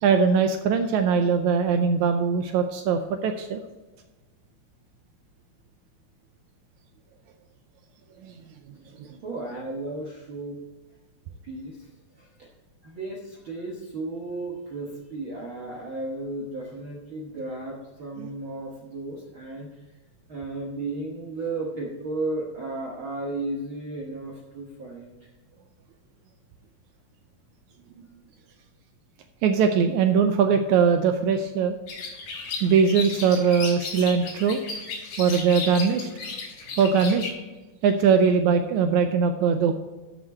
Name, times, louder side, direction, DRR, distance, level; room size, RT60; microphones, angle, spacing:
voice 1, 0.0-3.6 8.2-8.3 9.0-9.1 18.2-18.3 29.4-31.7 32.6-34.6 35.2-36.1 36.8-37.3 37.8-39.7, right 6 dB, 80° right, 7 dB, 1.9 m, -21 dB
voice 2, 9.2-10.6 11.4-11.9 12.2-12.5 12.8-19.8 20.3-25.3, right 2 dB, 55° right, -2 dB, 1.6 m, -34 dB
sound 1, 31.9-37.3, left 4 dB, 80° left, 3.5 m, -35 dB
13.0 x 6.1 x 4.2 m, 1.2 s
omnidirectional pair, 3.6 m